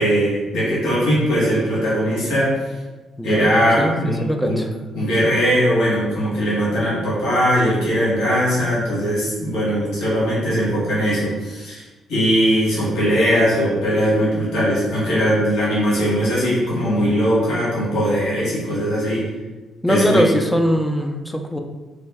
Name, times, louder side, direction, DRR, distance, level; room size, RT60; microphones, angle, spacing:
voice 1, 0.0-2.8 3.2-4.6 4.9-11.8 12.1-19.3 19.9-20.3, equal, 85° left, -9 dB, 1.3 m, -20 dB
voice 2, 3.2-4.7 19.8-21.6, equal, 5° left, 4 dB, 0.4 m, -21 dB
3.4 x 2.1 x 3.3 m, 1.2 s
cardioid pair, 90°, 0 cm